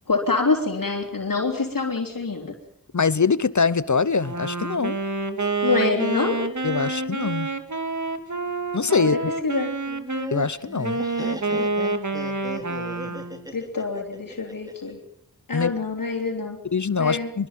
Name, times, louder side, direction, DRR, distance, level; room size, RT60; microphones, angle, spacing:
voice 1, 0.1-2.5 5.6-6.4 9.0-9.7 13.1-13.2 13.5-15.0 15.5-16.6 17.0-17.3, left 4 dB, 75° left, 3.7 m, -25 dB
voice 2, 2.9-5.0 6.6-7.5 8.7-9.2 10.3-11.0 15.5-15.7 16.7-17.5, left 5 dB, 55° left, 1.0 m, -23 dB
Wind instrument woodwind instrument, 4.2-10.3 10.8-13.5, right 3 dB, 55° right, 2.4 m, -28 dB
Laughter, 9.9-14.9, right 1 dB, 10° right, 4.0 m, -36 dB
24.5 x 23.0 x 7.6 m
wide cardioid pair, 60°, 34 cm